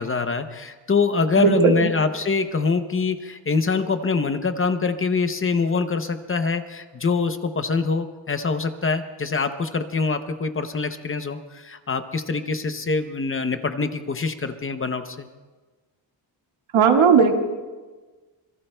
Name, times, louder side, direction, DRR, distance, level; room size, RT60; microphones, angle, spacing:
voice 1, 0.0-15.3, left 4 dB, 30° left, 8 dB, 0.6 m, -24 dB
voice 2, 1.4-1.9 16.7-17.3, right 6 dB, 85° right, 3 dB, 1.9 m, -16 dB
26.5 x 22.5 x 2.2 m, 1.3 s
wide cardioid pair, 175°, 46 cm